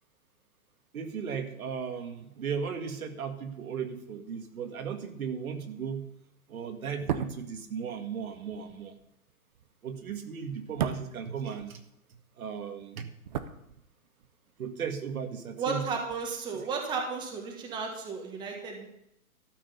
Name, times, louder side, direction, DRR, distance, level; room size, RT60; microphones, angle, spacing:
voice 1, 0.9-6.1 6.5-8.9 9.8-11.8 12.4-13.1 14.6-15.9, right 6 dB, 80° right, 6 dB, 2.0 m, -36 dB
sound 1, 6.9-12.2 12.5-14.3 14.6-14.7, right 9 dB, 30° right, 0.7 m, -37 dB
voice 2, 15.6-18.9, right 5 dB, 10° right, 1 dB, 1.3 m, -34 dB
13.0 x 6.3 x 8.1 m, 0.79 s
hypercardioid pair, 160°, 42 cm